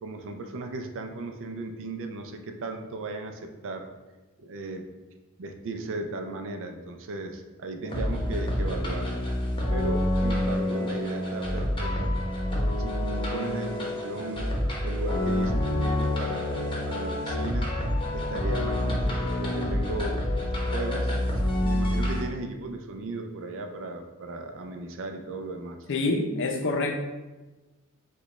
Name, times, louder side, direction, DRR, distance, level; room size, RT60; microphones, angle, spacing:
voice 1, 0.0-3.9 4.4-4.9 5.4-9.3 9.7-12.2 12.8-14.5 14.8-17.7 18.1-20.3 20.7-25.9, right 2 dB, 60° right, 6 dB, 0.5 m, -36 dB
sound 1, 7.9-22.2, left 1 dB, 25° left, 0.9 m, -27 dB
voice 2, 25.9-27.0, left 2 dB, 55° left, 4 dB, 0.5 m, -26 dB
5.0 x 2.3 x 4.0 m, 1.2 s
head